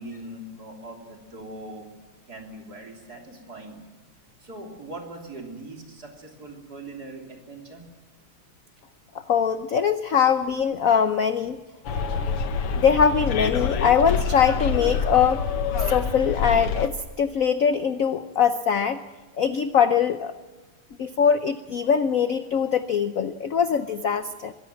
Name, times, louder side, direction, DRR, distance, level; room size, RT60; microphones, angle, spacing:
voice 1, 0.0-1.9 2.3-3.8 4.4-7.8, right 2 dB, 45° right, 1 dB, 3.8 m, -41 dB
voice 2, 9.3-11.6 12.7-15.4 15.8-19.0 19.4-20.3 21.0-24.5, left 7 dB, 70° left, 10 dB, 0.8 m, -22 dB
Bus, 11.9-16.9, left 5 dB, 85° left, 2.1 m, -26 dB
23.5 x 16.5 x 7.6 m, 1.3 s
omnidirectional pair, 2.4 m